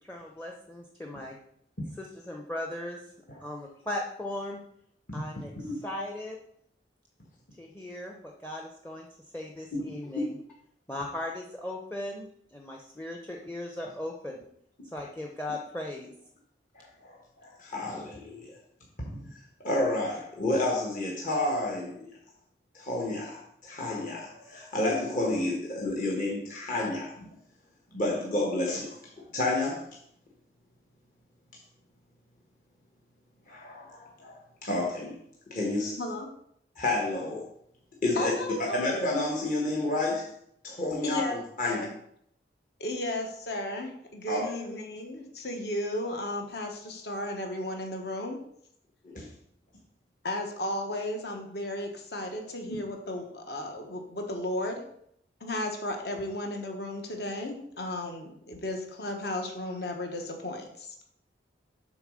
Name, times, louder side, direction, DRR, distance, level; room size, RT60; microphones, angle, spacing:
voice 1, 0.0-1.4 2.0-3.0 3.4-4.6 5.1-5.5 5.8-6.4 7.6-9.1 9.3-10.3 10.9-12.3 12.5-14.4 14.9-16.1, left 1 dB, 10° left, 0 dB, 0.6 m, -37 dB
voice 2, 16.7-18.6 19.3-22.1 22.7-27.3 27.9-29.9 33.5-35.1 35.5-36.0 36.7-37.4 38.0-38.3 38.7-40.3 40.6-41.8 44.3-44.5 49.0-49.3, left 2 dB, 45° left, -3 dB, 1.3 m, -30 dB
voice 3, 38.2-39.0 41.0-41.9 42.8-48.4 50.2-54.8 55.4-60.9, left 1 dB, 60° left, 3 dB, 1.2 m, -34 dB
7.0 x 4.0 x 6.3 m, 0.71 s
head